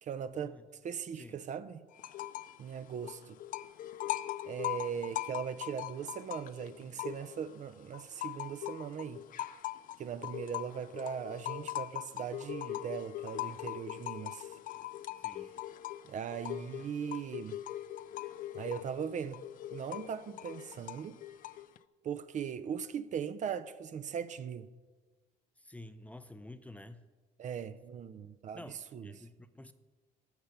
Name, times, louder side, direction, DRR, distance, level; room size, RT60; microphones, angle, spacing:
voice 1, 0.0-0.6 0.8-1.8 2.6-3.4 4.4-9.3 10.0-14.5 16.0-17.6 18.5-19.4 19.7-21.2 22.0-24.7 27.4-28.6 28.9-29.1, right 7 dB, 45° right, 0.6 m, -39 dB
sound 1, 2.0-2.6 2.9-7.5 7.9-21.8, left 13 dB, 55° left, 0.4 m, -41 dB
voice 2, 15.2-15.5 25.6-27.1 28.5-29.7, left 1 dB, 10° left, 0.6 m, -50 dB
12.0 x 6.5 x 6.9 m
cardioid pair, 110°, 17 cm